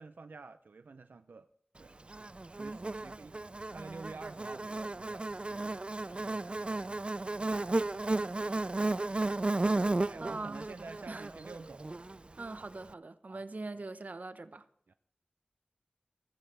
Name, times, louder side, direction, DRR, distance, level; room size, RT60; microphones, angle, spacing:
voice 1, 0.0-1.5 1.8-1.9 2.5-3.4 3.7-7.3 10.1-12.1 13.3-13.4 14.9-15.0, right 4 dB, 85° right, 0.5 m, -50 dB
Buzz, 2.1-12.5, right 2 dB, 35° right, 0.4 m, -34 dB
voice 2, 2.6-3.0 9.9-10.6 11.1-11.3 12.4-14.7, right 3 dB, 55° right, 1.0 m, -43 dB
15.5 x 14.5 x 3.4 m
wide cardioid pair, 60°, 3 cm